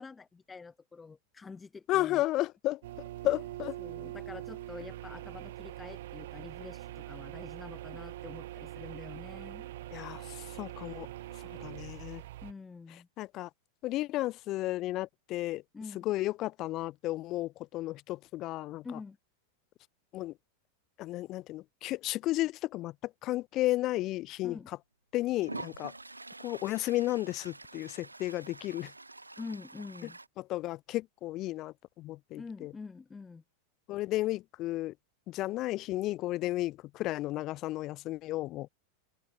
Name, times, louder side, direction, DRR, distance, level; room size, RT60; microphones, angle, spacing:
voice 1, 0.0-2.2 3.8-9.7 12.4-13.1 15.7-16.1 18.8-19.2 24.4-24.7 29.4-30.2 32.4-33.4, left 4 dB, 15° left, 1.2 m, -46 dB
voice 2, 1.9-2.8 3.2-3.8 9.9-11.1 11.4-12.2 13.2-13.5 13.8-15.6 16.0-19.0 20.1-20.3 21.0-24.6 25.1-25.9 26.4-28.9 30.4-32.7 33.9-34.9 35.3-38.7, left 17 dB, 35° left, 0.6 m, -33 dB
sound 1, 2.8-12.5, right 15 dB, 55° right, 0.6 m, -43 dB
Toilet flush, 24.4-24.5 25.4-30.3, right 2 dB, 80° right, 1.2 m, -46 dB
figure-of-eight pair, 90°, 0 cm